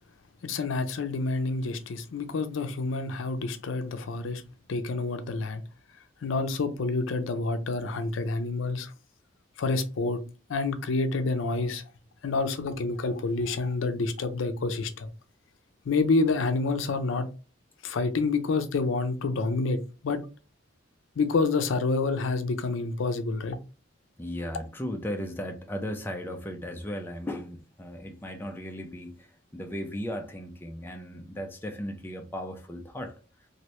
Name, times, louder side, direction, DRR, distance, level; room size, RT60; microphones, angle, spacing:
voice 1, 0.4-4.4 4.7-5.6 6.2-8.9 9.6-10.2 10.5-11.8 12.2-15.1 15.9-17.3 17.8-20.2 21.2-23.6, left 3 dB, 85° left, 0.5 m, -28 dB
voice 2, 24.2-29.3 29.5-33.2, equal, 10° left, 0.4 m, -36 dB
2.9 x 2.6 x 3.1 m
head